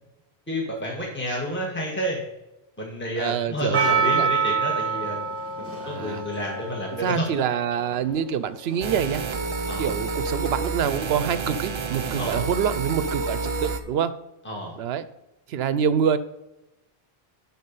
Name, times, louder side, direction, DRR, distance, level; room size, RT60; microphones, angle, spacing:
voice 1, 0.5-2.2 2.8-5.3 5.9-7.3 9.7-9.9 12.1-12.5 14.4-14.7, equal, 10° left, -2 dB, 1.6 m, -30 dB
voice 2, 3.2-4.3 5.8-6.2 7.0-9.2 9.8-14.2 14.8-15.1 15.5-16.2, right 8 dB, 75° right, 14 dB, 0.8 m, -26 dB
Percussion, 3.7-8.1 8.7-8.8, right 5 dB, 10° right, 1.7 m, -26 dB
sound 1, 8.8-13.8, right 3 dB, 35° right, 0.5 m, -29 dB
11.0 x 4.2 x 5.4 m, 0.96 s
omnidirectional pair, 1.1 m